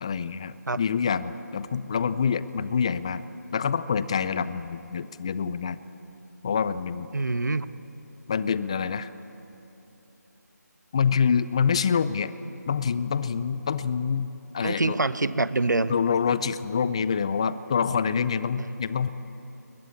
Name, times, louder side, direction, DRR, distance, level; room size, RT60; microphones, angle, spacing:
voice 1, 0.0-3.2 3.5-5.8 6.4-7.1 8.3-9.1 10.9-12.3 12.7-14.3 14.5-15.0 15.9-19.1, left 6 dB, 20° left, 15 dB, 0.4 m, -26 dB
voice 2, 7.1-7.7 14.6-15.9 18.6-18.7, right 2 dB, 80° right, 14 dB, 1.0 m, -25 dB
22.0 x 21.0 x 8.4 m, 3.0 s
figure-of-eight pair, 165°, 10 cm